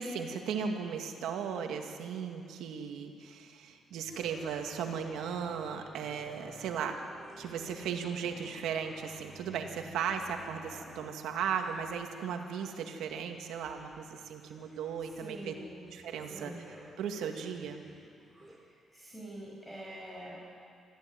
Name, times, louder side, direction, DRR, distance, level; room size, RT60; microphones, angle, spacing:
voice 1, 0.0-7.0 7.4-15.5 15.9-16.5 17.0-17.8, right 7 dB, 85° right, 4 dB, 2.2 m, -36 dB
sound 1, 4.1-11.0, left 2 dB, 40° left, 5.4 m, -53 dB
sound 2, 4.1-6.8 7.1-9.5 10.0-18.6, right 1 dB, 20° right, 5.5 m, -56 dB
voice 2, 15.2-15.8 16.3-16.6 18.6-20.5, right 1 dB, 5° left, -5 dB, 6.3 m, -45 dB
26.0 x 14.0 x 9.5 m, 2.3 s
cardioid pair, 90°, 0 cm